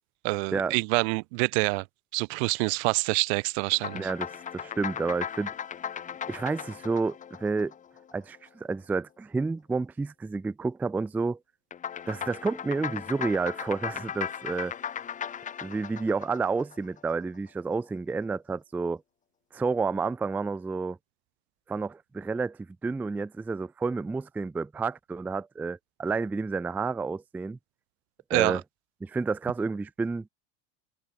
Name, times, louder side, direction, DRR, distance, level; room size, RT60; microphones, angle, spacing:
voice 1, 0.2-1.8 2.1-4.1 28.3-28.6, right 32 dB, 60° right, 0.8 m, -26 dB
sound 1, 3.7-8.4 11.7-17.1, left 8 dB, 20° left, 1.2 m, -37 dB
voice 2, 3.9-5.5 6.3-7.7 8.1-11.4 12.1-14.7 15.6-19.0 19.5-21.0 21.7-27.6 28.3-28.6 29.0-30.3, right 4 dB, 5° right, 0.4 m, -30 dB
supercardioid pair, 140°, 37 cm